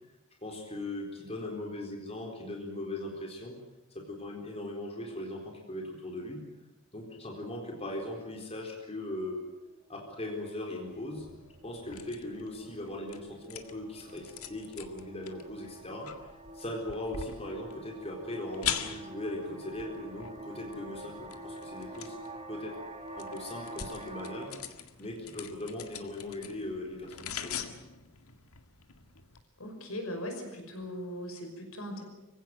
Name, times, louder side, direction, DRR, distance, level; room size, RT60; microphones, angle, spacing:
voice 1, 0.4-3.6 3.9-6.4 6.9-9.5 9.9-11.3 11.6-16.3 16.5-22.2 22.5-22.8 23.2-24.5 25.0-27.6, left 1 dB, 30° left, 1 dB, 4.0 m, -39 dB
sound 1, 6.3-6.6 7.2-7.3 7.6-7.9 8.2-24.5, right 2 dB, 30° right, 2.9 m, -47 dB
sound 2, 10.9-29.4, left 8 dB, 90° left, 1.9 m, -44 dB
voice 2, 29.6-32.0, equal, 75° left, 4 dB, 5.7 m, -39 dB
24.5 x 16.5 x 9.4 m, 1.0 s
head